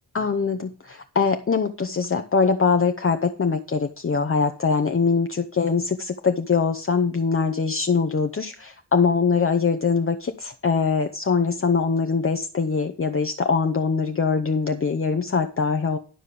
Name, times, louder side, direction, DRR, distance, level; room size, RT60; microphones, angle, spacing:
voice 1, 0.1-16.0, left 5 dB, 30° left, 6 dB, 0.7 m, -23 dB
11.5 x 5.4 x 6.7 m, 0.36 s
wide cardioid pair, 100°, 42 cm